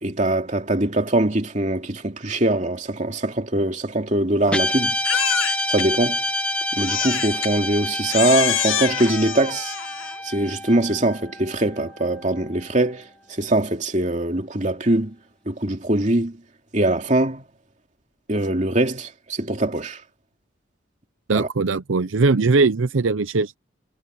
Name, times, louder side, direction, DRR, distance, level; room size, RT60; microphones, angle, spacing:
voice 1, 0.0-4.9 5.7-6.2 6.7-9.7 10.2-15.1 15.5-16.4 16.7-17.4 18.3-20.0 21.3-21.5, right 1 dB, 40° right, 2.7 m, -22 dB
Guitar, 4.5-13.0, left 1 dB, 5° left, 1.9 m, -28 dB
Crying sobbing, 5.0-5.9 6.8-7.5 8.1-10.2, left 9 dB, 85° left, 1.4 m, -26 dB
voice 2, 21.3-23.6, right 3 dB, 80° right, 0.7 m, -20 dB
head